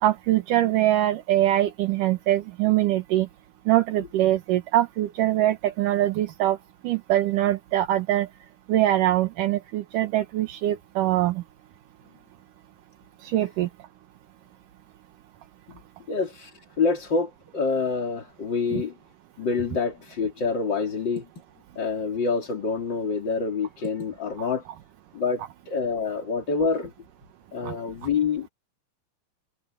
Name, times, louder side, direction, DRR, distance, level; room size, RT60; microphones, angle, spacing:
voice 1, 0.0-3.3 3.7-6.6 6.8-8.3 8.7-11.4 13.2-13.7 18.7-18.8 27.6-27.8, right 13 dB, 75° right, 2.7 m, -23 dB
voice 2, 16.1-18.9 19.4-21.3 21.7-24.6 25.1-26.9 27.5-28.5, left 4 dB, 35° left, 3.5 m, -27 dB
omnidirectional pair, 3.9 m